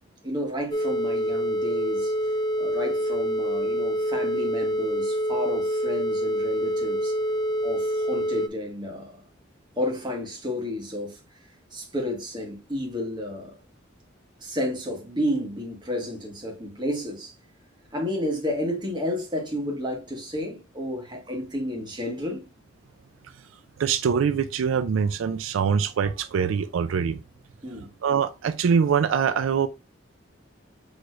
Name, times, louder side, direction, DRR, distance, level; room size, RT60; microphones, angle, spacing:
voice 1, 0.2-2.1 2.6-7.2 7.6-9.2 9.8-11.2 11.7-13.5 14.4-17.3 17.9-22.4 27.6-27.9, left 1 dB, 25° right, 1.3 m, -31 dB
sound 1, 0.7-8.5, equal, 20° left, 0.3 m, -26 dB
voice 2, 23.8-27.2 28.0-29.7, right 6 dB, 85° right, 0.4 m, -23 dB
6.3 x 3.1 x 2.4 m
head